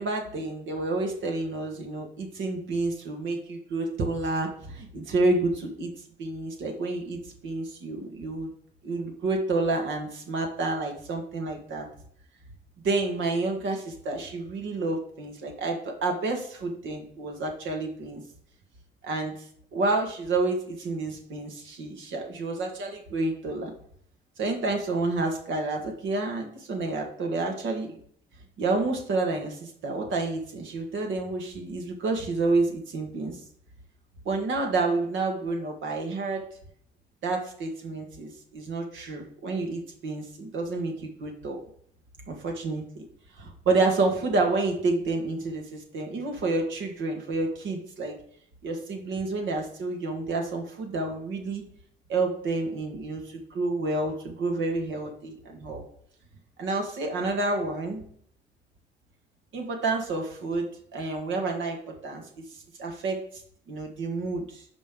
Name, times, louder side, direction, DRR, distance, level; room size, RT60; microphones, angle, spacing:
voice 1, 0.0-5.9 6.2-8.5 8.8-11.9 12.8-18.2 19.0-19.3 19.7-23.7 24.4-28.0 28.6-33.4 34.3-36.5 37.2-41.6 42.3-43.0 43.3-48.2 48.6-51.6 52.1-55.8 56.6-58.1 59.5-61.8 62.0-62.3 62.8-63.4 63.7-64.6, right 3 dB, 75° right, 2 dB, 1.9 m, -29 dB
9.9 x 5.4 x 3.8 m, 0.63 s
cardioid pair, 90°, 20 cm